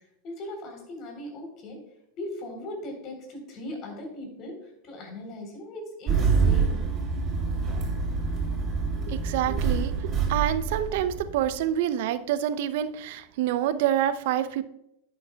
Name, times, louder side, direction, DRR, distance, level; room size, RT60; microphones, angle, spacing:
voice 1, 0.0-1.8 2.2-4.6 4.8-6.8, left 1 dB, 45° left, 3 dB, 3.7 m, -38 dB
Engine starting, 6.1-11.6, right 5 dB, 30° right, 3.3 m, -26 dB
voice 2, 9.1-14.6, right 11 dB, 60° right, 13 dB, 0.6 m, -27 dB
11.0 x 9.0 x 2.3 m, 0.81 s
hypercardioid pair, 95°, 0 cm